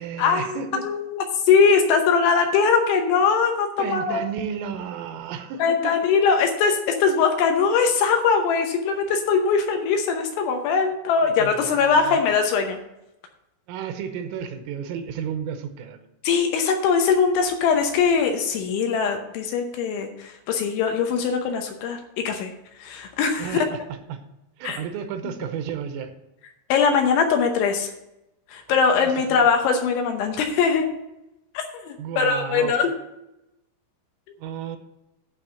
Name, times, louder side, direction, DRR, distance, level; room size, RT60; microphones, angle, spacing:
voice 1, 0.0-0.9 3.8-6.0 11.2-12.2 13.7-16.1 23.4-24.2 24.6-26.1 28.7-29.5 32.0-32.8 34.4-34.8, right 8 dB, 80° right, 8 dB, 3.3 m, -33 dB
voice 2, 0.8-4.2 5.6-12.8 16.2-22.5 22.8-23.7 24.6-24.8 26.7-27.9 28.5-30.9 31.5-32.9, left 5 dB, 75° left, 5 dB, 3.0 m, -21 dB
12.0 x 4.1 x 7.6 m, 0.89 s
omnidirectional pair, 5.9 m